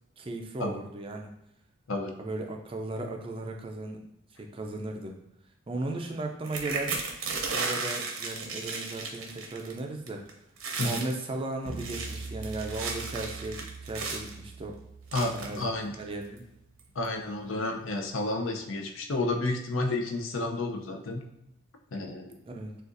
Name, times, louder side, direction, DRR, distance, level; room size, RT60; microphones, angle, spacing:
voice 1, 0.2-1.3 2.2-4.0 4.5-5.2 5.7-7.0 7.5-10.2 10.8-14.8 15.3-15.6 16.0-16.5 22.5-22.7, right 2 dB, 25° right, 2 dB, 0.4 m, -36 dB
sound 1, 6.4-9.8 10.1-10.3 10.6-11.1 11.7-14.3 15.1-15.7 16.4-16.5 16.8-17.1, right 4 dB, 80° right, 0.8 m, -34 dB
sound 2, 11.7-17.0, right 3 dB, 20° left, 1.3 m, -44 dB
voice 2, 15.1-15.9 16.9-21.2 21.9-22.3, left 2 dB, 70° left, 3 dB, 0.6 m, -31 dB
6.5 x 2.4 x 2.6 m, 0.85 s
head